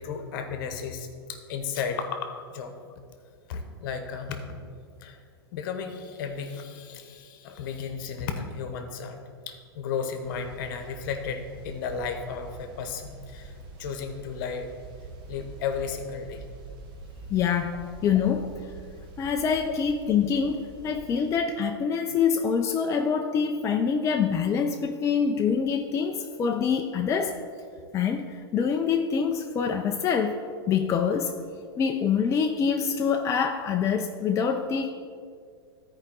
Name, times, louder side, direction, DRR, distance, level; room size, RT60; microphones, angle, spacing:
voice 1, 0.0-2.7 3.5-4.6 5.0-5.2 5.5-9.2 9.5-13.5 13.8-14.7 15.3-16.4, left 6 dB, 55° left, 6 dB, 1.1 m, -34 dB
sound 1, 10.2-21.3, right 3 dB, 35° right, 1.2 m, -45 dB
voice 2, 17.3-18.7 19.2-27.4 27.9-30.4 30.7-31.3 31.8-34.9, left 6 dB, 25° left, 4 dB, 0.5 m, -25 dB
13.5 x 4.8 x 3.8 m, 2.1 s
hypercardioid pair, 105°, 13 cm